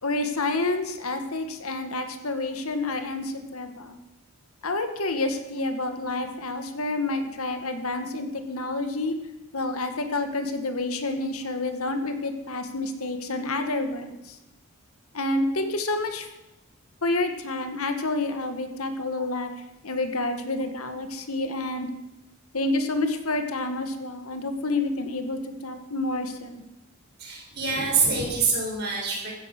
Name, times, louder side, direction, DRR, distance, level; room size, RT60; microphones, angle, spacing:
voice 1, 0.0-4.0 4.6-9.2 9.5-14.4 15.1-16.3 17.0-19.5 19.8-21.9 22.5-26.6, left 2 dB, 85° left, 7 dB, 1.9 m, -29 dB
voice 2, 27.2-29.3, right 4 dB, 50° right, -2 dB, 6.5 m, -25 dB
15.5 x 14.0 x 6.1 m, 0.97 s
head